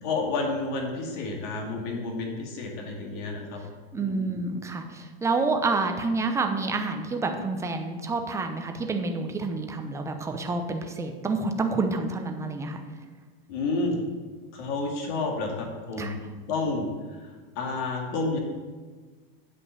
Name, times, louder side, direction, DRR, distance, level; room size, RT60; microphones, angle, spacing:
voice 1, 0.0-3.6 4.0-4.3 13.5-14.0 14.5-17.3 17.6-18.4, left 3 dB, 55° left, 0 dB, 2.3 m, -30 dB
voice 2, 3.9-12.8 16.0-16.1, right 3 dB, 10° right, 5 dB, 0.7 m, -28 dB
8.3 x 5.4 x 6.7 m, 1.4 s
supercardioid pair, 140°, 29 cm